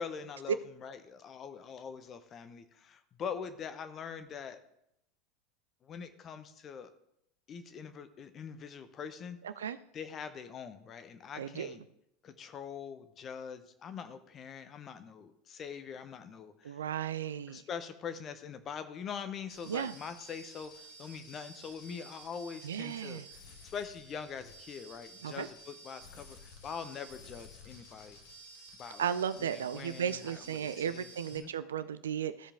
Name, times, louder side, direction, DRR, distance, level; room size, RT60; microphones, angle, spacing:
voice 1, 0.0-4.6 5.8-6.9 7.5-9.4 9.9-11.8 12.2-16.8 17.5-23.2 23.6-28.2 28.8-29.1 29.4-31.5, left 6 dB, 35° left, 10 dB, 0.9 m, -43 dB
voice 2, 9.4-9.8 11.4-11.8 16.6-17.6 19.6-20.0 22.6-23.3 25.2-25.5 29.0-32.5, right 8 dB, 75° right, 13 dB, 0.4 m, -35 dB
sound 1, 19.5-31.4, right 1 dB, 65° left, 1.6 m, -53 dB
14.5 x 5.0 x 3.7 m, 0.78 s
figure-of-eight pair, 80°, 0 cm